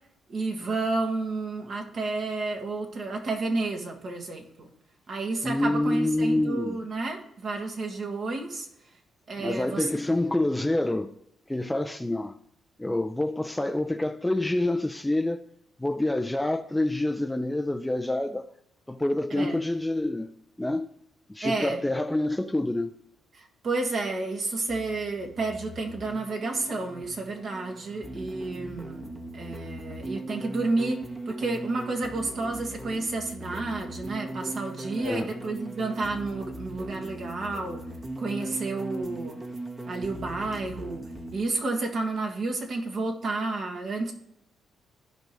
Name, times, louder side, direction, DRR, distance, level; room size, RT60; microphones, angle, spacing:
voice 1, 0.3-4.7 5.1-8.7 9.3-9.9 10.3-10.4 19.3-19.6 21.4-21.8 23.3-37.8 38.2-39.4 39.8-41.1 41.3-44.1, right 3 dB, 55° right, 1.9 m, -31 dB
voice 2, 5.4-6.8 9.4-11.1 11.5-12.4 12.8-15.4 15.8-18.5 18.9-20.3 20.6-20.9 21.3-22.9 35.0-35.3, left 1 dB, 10° left, 0.5 m, -27 dB
sound 1, 24.7-41.4, right 1 dB, 25° right, 1.2 m, -39 dB
15.5 x 5.3 x 3.1 m
cardioid pair, 90°, 0 cm